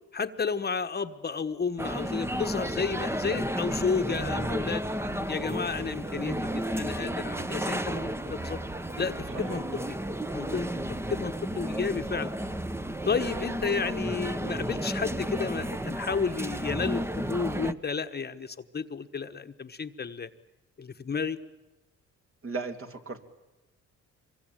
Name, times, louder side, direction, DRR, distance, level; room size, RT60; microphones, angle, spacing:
voice 1, 0.1-4.8 5.3-6.4 6.7-8.6 9.0-9.6 9.9-10.0 10.3-10.7 11.1-12.3 13.0-20.3 20.8-21.4, left 5 dB, 35° left, 8 dB, 1.2 m, -31 dB
sound 1, 1.8-17.7, right 1 dB, 10° right, 1.0 m, -32 dB
voice 2, 22.4-23.2, right 4 dB, 45° right, 5 dB, 3.2 m, -36 dB
25.0 x 23.0 x 9.1 m, 1.1 s
cardioid pair, 90°, 30 cm